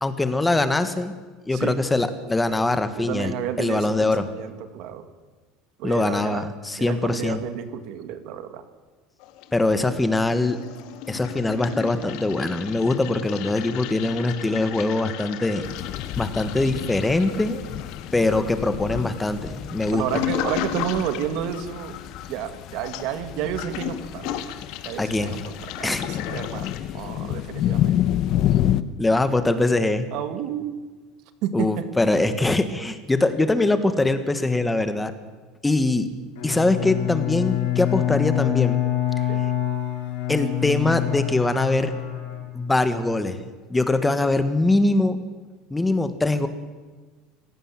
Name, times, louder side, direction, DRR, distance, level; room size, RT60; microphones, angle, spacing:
voice 1, 0.0-1.1 1.4-4.3 5.8-7.4 9.5-10.6 11.1-15.6 16.2-17.7 18.1-20.0 25.0-25.4 25.8-26.0 29.0-30.1 31.5-35.1 35.6-36.1 36.4-38.8 40.3-41.9 42.5-43.4 43.7-45.2 45.7-46.5, left 2 dB, 10° left, 10 dB, 1.5 m, -22 dB
voice 2, 3.0-5.0 5.8-6.5 6.8-8.7 19.9-22.0 22.3-24.4 24.8-25.4 25.6-27.9 30.1-30.8 31.4-31.9 39.3-39.4, right 9 dB, 60° right, 9 dB, 2.2 m, -31 dB
Toilet flush, 9.2-10.1 10.3-26.8, left 11 dB, 65° left, 1.8 m, -35 dB
sound 1, 15.6-28.8, left 12 dB, 45° left, 1.0 m, -29 dB
Bowed string instrument, 36.3-43.0, left 14 dB, 85° left, 5.4 m, -26 dB
25.0 x 17.0 x 7.5 m, 1.4 s
cardioid pair, 150°, 0 cm